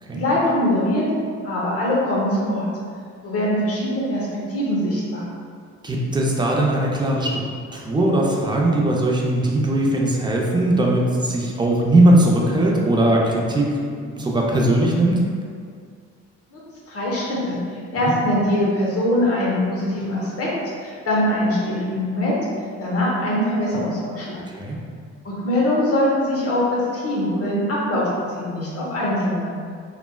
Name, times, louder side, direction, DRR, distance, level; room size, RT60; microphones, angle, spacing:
voice 1, 0.1-1.0 1.4-2.7 3.2-5.2 16.5-16.6 16.9-20.5 20.8-22.3 22.8-24.4 25.2-28.0 28.3-29.5, left 1 dB, 50° left, -5 dB, 0.9 m, -22 dB
voice 2, 5.8-7.4 7.7-15.2 18.0-18.2 24.5-24.8, right 1 dB, 15° right, -2 dB, 0.4 m, -19 dB
3.3 x 2.0 x 2.3 m, 2.2 s
cardioid pair, 90°, 30 cm